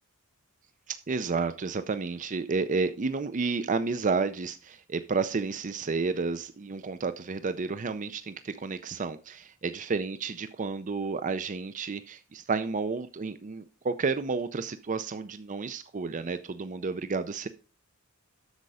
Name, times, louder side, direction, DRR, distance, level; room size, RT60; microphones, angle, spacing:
voice 1, 0.9-17.5, right 4 dB, 35° right, 0.5 m, -31 dB
8.1 x 6.7 x 4.8 m
head